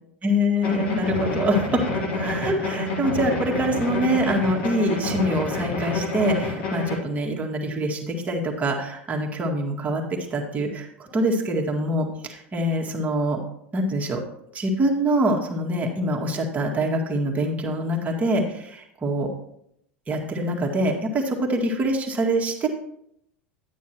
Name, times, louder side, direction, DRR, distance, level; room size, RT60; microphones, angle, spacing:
voice 1, 0.2-1.8 2.2-10.0 10.3-13.4 13.7-14.2 14.5-19.3 20.1-22.7, right 1 dB, 20° right, 0 dB, 2.0 m, -24 dB
sound 1, 0.6-7.0, left 3 dB, 65° left, 2.5 m, -28 dB
10.5 x 9.3 x 3.0 m, 0.74 s
hypercardioid pair, 85°, 7 cm